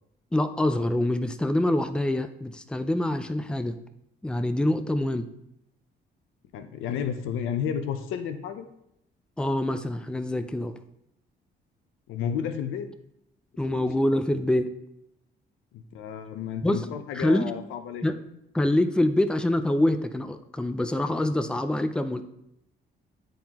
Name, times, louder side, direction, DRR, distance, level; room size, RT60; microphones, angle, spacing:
voice 1, 0.3-3.8 4.2-5.3 9.4-10.7 13.6-14.7 16.6-16.9 17.1-17.5 18.0-18.2 18.5-22.2, left 1 dB, 5° left, 10 dB, 0.4 m, -25 dB
voice 2, 6.5-8.7 12.1-12.9 13.7-14.1 15.7-18.0, left 8 dB, 90° left, 9 dB, 0.6 m, -32 dB
10.5 x 3.8 x 2.9 m, 0.78 s
cardioid pair, 90°, 20 cm